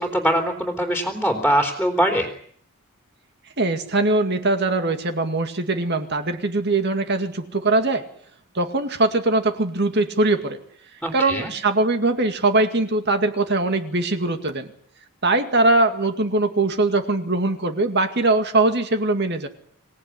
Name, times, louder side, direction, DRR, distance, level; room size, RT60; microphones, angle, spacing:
voice 1, 0.0-2.3 11.0-11.5, right 1 dB, ahead, 3 dB, 3.5 m, -22 dB
voice 2, 3.6-8.0 8.5-10.6 11.1-14.7 15.2-19.5, right 2 dB, 50° right, 7 dB, 2.2 m, -21 dB
26.0 x 17.5 x 9.8 m, 0.63 s
head